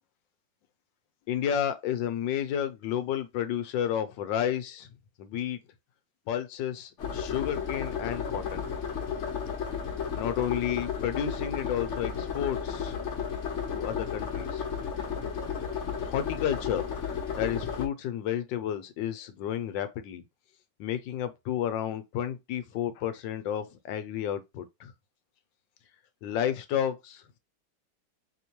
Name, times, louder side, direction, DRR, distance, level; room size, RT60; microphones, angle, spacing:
voice 1, 1.3-4.9 5.2-5.6 6.3-8.7 10.1-13.0 13.7-14.6 16.0-20.2 20.8-24.9 26.2-27.4, left 9 dB, 75° left, 1.2 m, -31 dB
sound 1, 7.0-17.9, left 6 dB, 55° left, 0.8 m, -33 dB
4.2 x 2.9 x 3.0 m
omnidirectional pair, 2.2 m